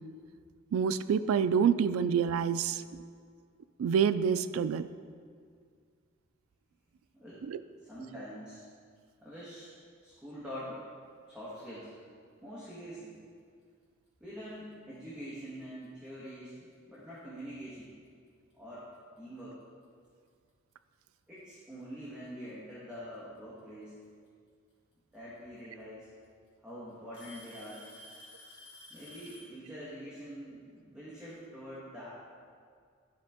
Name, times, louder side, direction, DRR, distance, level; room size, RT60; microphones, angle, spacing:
voice 1, 0.7-2.8 3.8-4.9 7.5-7.6, right 7 dB, 80° right, 13 dB, 0.3 m, -27 dB
voice 2, 7.8-8.6 9.2-9.7 10.0-10.8 11.3-11.9 12.4-13.2 14.2-17.9 18.5-18.9 19.2-19.6 21.3-24.0 25.1-26.1 26.6-27.9 28.9-32.1, equal, 5° right, -10 dB, 1.3 m, -45 dB
Alarm / Tick-tock, 15.6-15.8 16.7-16.8 17.6-17.7 19.4-19.5 20.7-20.8 22.0-22.5 24.3-24.4 25.6-25.7 26.0-26.5 27.1-29.6, left 1 dB, 25° left, 1.8 m, -52 dB
10.5 x 5.0 x 3.5 m, 2.1 s
head